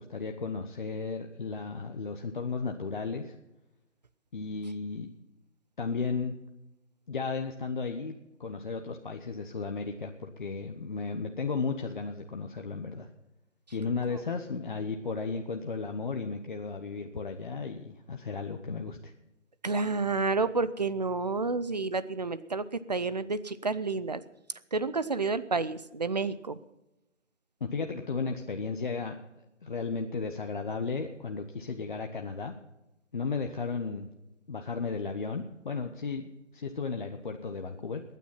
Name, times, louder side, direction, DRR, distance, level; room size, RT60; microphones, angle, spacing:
voice 1, 0.0-3.4 4.3-5.1 5.8-6.3 7.1-8.1 8.4-13.1 13.7-19.1 27.6-29.2 29.6-32.5 33.1-34.1 34.5-38.0, left 4 dB, 40° left, 4 dB, 0.9 m, -34 dB
voice 2, 19.6-24.2 24.7-26.6, right 3 dB, 35° right, 15 dB, 0.5 m, -30 dB
21.5 x 9.3 x 5.6 m, 0.97 s
hypercardioid pair, 170°, 37 cm